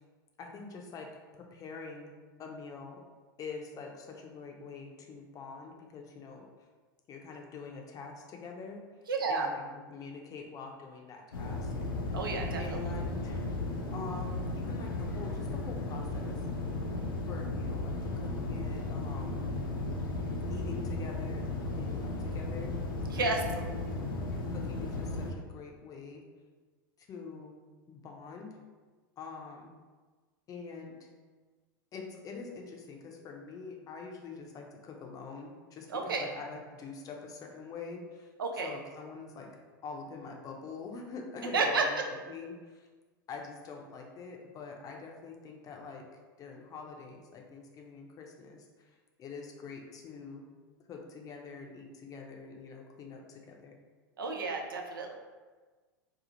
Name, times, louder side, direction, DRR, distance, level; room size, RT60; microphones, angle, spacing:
voice 1, 0.4-1.1 1.4-2.1 2.4-3.0 3.4-6.5 7.1-8.8 9.3-11.7 12.6-13.6 13.9-16.4 17.3-19.5 20.5-22.7 23.2-24.0 24.5-26.2 27.0-27.5 27.9-28.6 29.2-29.7 30.5-31.1 31.9-38.3 38.6-39.5 39.8-42.0 42.3-42.9 43.3-46.0 46.4-48.7 49.2-50.4 50.9-53.8, left 4 dB, 30° left, 2 dB, 0.6 m, -45 dB
voice 2, 9.1-9.5 12.1-12.9 23.1-23.4 35.9-36.2 38.4-38.7 41.5-41.8 54.2-55.1, right 4 dB, 80° right, 2 dB, 0.5 m, -31 dB
sound 1, 11.3-25.3, left 2 dB, 80° left, 0.5 m, -35 dB
2.9 x 2.3 x 3.8 m, 1.4 s
hypercardioid pair, 90°, 11 cm